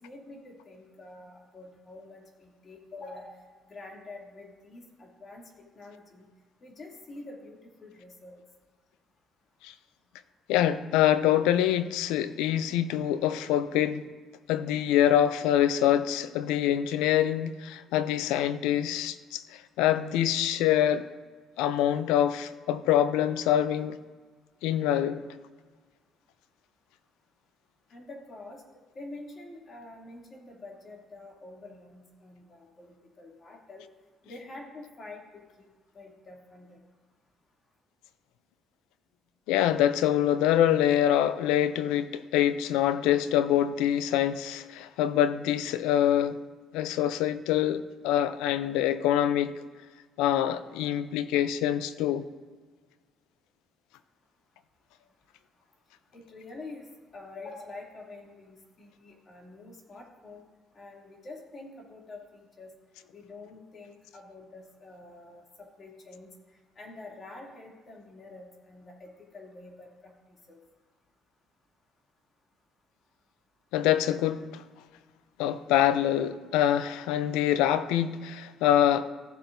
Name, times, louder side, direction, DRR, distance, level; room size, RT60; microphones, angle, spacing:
voice 1, 0.0-3.4 3.7-6.2 6.6-8.4 27.9-28.6 28.9-33.8 34.2-35.7 35.9-36.8 56.1-56.9 57.1-60.4 60.7-62.7 63.1-66.3 66.8-70.1 70.5-70.6, left 2 dB, 45° left, 2.7 m, -47 dB
voice 2, 10.5-14.0 14.5-21.1 21.6-24.0 24.6-25.2 39.5-46.4 46.7-49.5 50.2-52.3 73.7-74.6 75.4-79.1, left 11 dB, 80° left, 0.5 m, -25 dB
15.0 x 7.3 x 2.7 m
hypercardioid pair, 55°, 0 cm